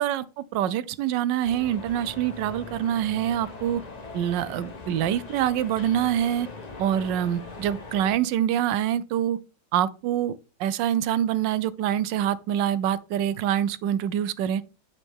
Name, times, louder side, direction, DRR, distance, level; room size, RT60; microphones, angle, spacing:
voice 1, 0.0-3.8 4.1-6.5 6.8-9.4 9.7-14.6, right 10 dB, 85° right, 1.3 m, -25 dB
sound 1, 1.4-8.2, left 3 dB, 30° left, 0.8 m, -41 dB
9.7 x 4.3 x 3.5 m
omnidirectional pair, 1.9 m